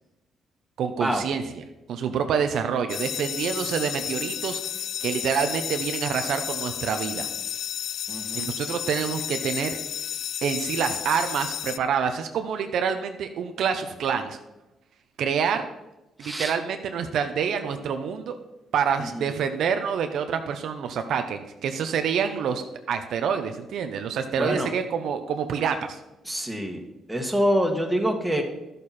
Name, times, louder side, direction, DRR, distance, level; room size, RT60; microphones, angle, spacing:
voice 1, 0.8-1.4 1.9-4.6 5.0-7.3 8.3-9.7 10.4-14.4 15.2-15.6 16.2-18.4 18.7-26.0, right 7 dB, 70° right, 7 dB, 0.8 m, -27 dB
sound 1, 2.9-11.8, left 10 dB, 70° left, 0.3 m, -32 dB
voice 2, 8.1-8.5 16.2-16.5 19.0-19.2 24.4-24.7 26.2-26.8 27.1-28.4, equal, 5° right, 3 dB, 1.6 m, -26 dB
12.0 x 6.8 x 4.3 m, 0.98 s
cardioid pair, 90°, 0 cm